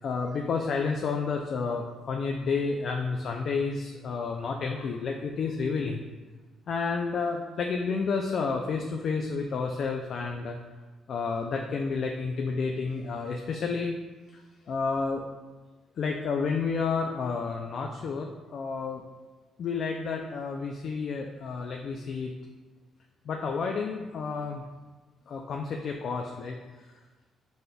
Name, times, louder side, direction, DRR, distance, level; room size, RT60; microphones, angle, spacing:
voice 1, 0.0-6.0 6.7-10.6 11.1-13.9 14.3-14.4 14.7-15.2 16.0-19.0 19.6-22.3 23.3-24.6 25.3-26.6, left 4 dB, 60° left, 2 dB, 0.3 m, -30 dB
5.0 x 4.1 x 2.2 m, 1.3 s
cardioid pair, 90°, 0 cm